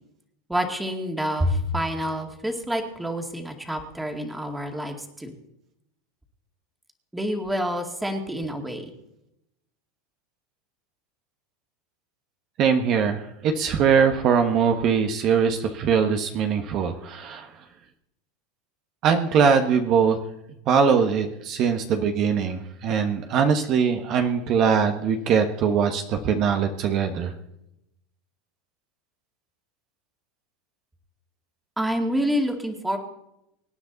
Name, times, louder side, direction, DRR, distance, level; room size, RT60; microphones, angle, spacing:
voice 1, 0.5-5.3 7.1-8.9 31.8-33.0, equal, 5° right, 3 dB, 2.2 m, -27 dB
voice 2, 12.6-17.5 19.0-20.2 20.7-27.3, right 6 dB, 45° right, 5 dB, 1.3 m, -22 dB
25.0 x 9.6 x 4.1 m, 0.84 s
supercardioid pair, 120°, 0 cm